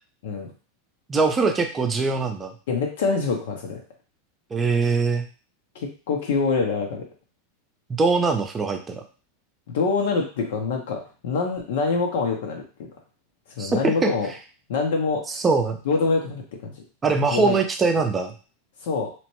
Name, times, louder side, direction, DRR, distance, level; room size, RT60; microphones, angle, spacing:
voice 1, 1.1-2.5 4.5-5.2 7.9-9.0 13.6-14.1 15.3-15.8 17.0-18.3, right 4 dB, 20° right, 5 dB, 0.5 m, -22 dB
voice 2, 2.7-3.8 5.7-7.0 9.7-12.9 13.6-14.3 14.7-15.4 15.9-16.7 17.3-17.6 18.8-19.1, left 4 dB, 75° left, 1 dB, 0.6 m, -25 dB
2.9 x 2.1 x 3.0 m, 0.36 s
supercardioid pair, 125°, 0 cm